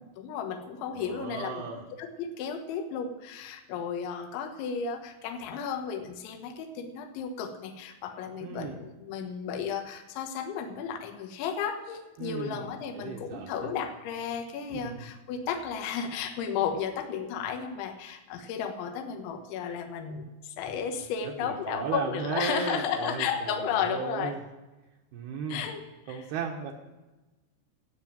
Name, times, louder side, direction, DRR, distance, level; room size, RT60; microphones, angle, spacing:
voice 1, 0.2-1.6 2.0-24.4 25.5-25.8 26.1-26.3, left 7 dB, 80° left, 5 dB, 3.5 m, -33 dB
voice 2, 0.9-1.8 8.4-8.8 12.2-13.7 14.7-15.1 21.4-24.4 25.1-25.6 26.1-26.7, right 6 dB, 70° right, 1 dB, 2.8 m, -35 dB
13.5 x 8.9 x 7.5 m, 1.1 s
omnidirectional pair, 5.4 m